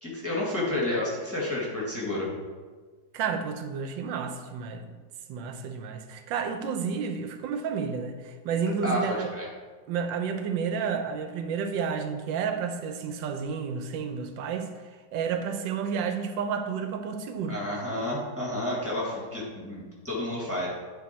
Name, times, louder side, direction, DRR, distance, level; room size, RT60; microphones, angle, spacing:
voice 1, 0.0-2.3 8.8-9.5 17.5-20.7, left 1 dB, 10° right, -5 dB, 1.5 m, -30 dB
voice 2, 3.1-5.0 5.3-9.3 9.9-14.7 15.1-17.6, right 6 dB, 80° right, 6 dB, 1.3 m, -31 dB
9.8 x 3.4 x 4.2 m, 1.4 s
omnidirectional pair, 2.1 m